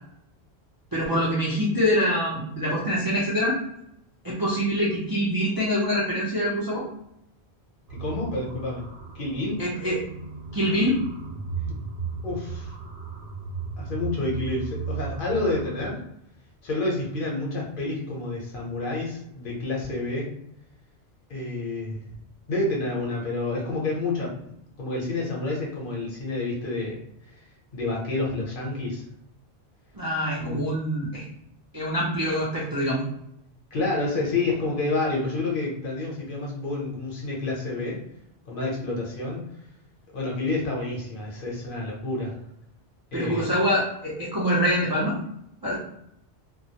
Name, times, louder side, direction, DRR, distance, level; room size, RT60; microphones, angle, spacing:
voice 1, 0.9-3.6 4.2-6.9 9.6-10.0 10.5-11.0 29.9-31.2 31.7-33.0 43.1-45.2 45.6-45.8, equal, 35° right, -7 dB, 0.3 m, -25 dB
voice 2, 7.9-8.8 9.1-9.6 12.2-12.8 13.8-16.0 16.6-20.3 21.3-22.0 22.5-24.3 24.8-27.0 27.7-29.0 30.4-30.6 33.7-38.0 38.5-39.5 40.1-42.4 43.1-43.4, left 2 dB, 55° left, -3 dB, 0.8 m, -29 dB
sound 1, 7.9-15.9, right 5 dB, 65° right, 0.8 m, -36 dB
2.2 x 2.0 x 2.7 m, 0.77 s
omnidirectional pair, 1.1 m